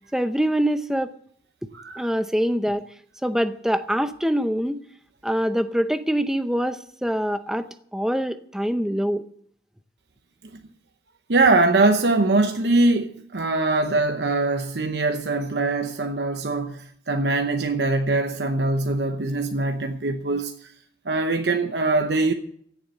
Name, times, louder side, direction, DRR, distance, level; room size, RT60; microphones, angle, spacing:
voice 1, 0.1-1.1 2.0-2.9 3.2-4.8 5.2-9.2, equal, 5° right, 0.6 m, -24 dB
voice 2, 1.7-2.1 11.3-20.7 21.0-22.3, right 2 dB, 75° right, 0.9 m, -22 dB
15.5 x 7.2 x 8.1 m
head